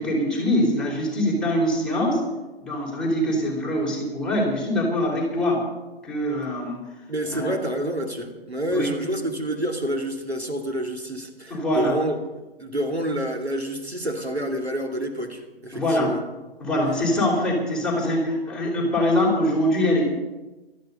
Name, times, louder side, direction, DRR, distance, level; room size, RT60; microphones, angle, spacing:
voice 1, 0.0-2.2 2.6-5.6 6.0-6.8 7.3-7.5 8.7-8.9 11.5-12.0 15.7-16.1 16.6-20.0, left 1 dB, 5° left, -5 dB, 4.2 m, -23 dB
voice 2, 7.1-16.2, right 1 dB, 90° right, 3 dB, 2.5 m, -28 dB
17.0 x 13.0 x 5.4 m, 1.1 s
figure-of-eight pair, 125°, 31 cm